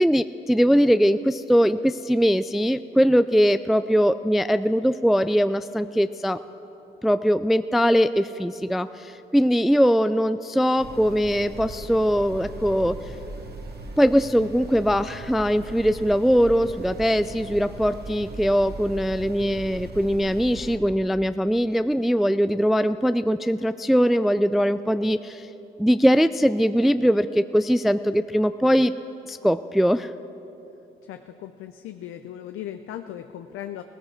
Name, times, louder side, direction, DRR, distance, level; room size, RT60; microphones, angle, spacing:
voice 1, 0.0-6.4 7.0-13.0 14.0-25.5 25.8-28.9 29.3-30.1, equal, ahead, 12 dB, 0.3 m, -21 dB
sound 1, 10.8-20.8, right 2 dB, 50° right, 1.7 m, -39 dB
voice 2, 31.1-33.8, left 11 dB, 85° left, 8 dB, 0.5 m, -37 dB
18.0 x 14.5 x 4.5 m, 2.9 s
supercardioid pair, 55°, 21 cm